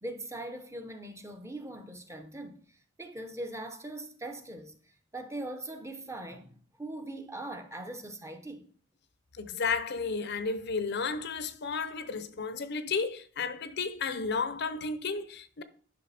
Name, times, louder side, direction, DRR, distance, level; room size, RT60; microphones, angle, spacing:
voice 1, 0.0-8.7, right 1 dB, 15° right, 0.9 m, -41 dB
voice 2, 9.4-15.6, left 4 dB, 55° left, 0.7 m, -33 dB
11.0 x 5.8 x 4.2 m
head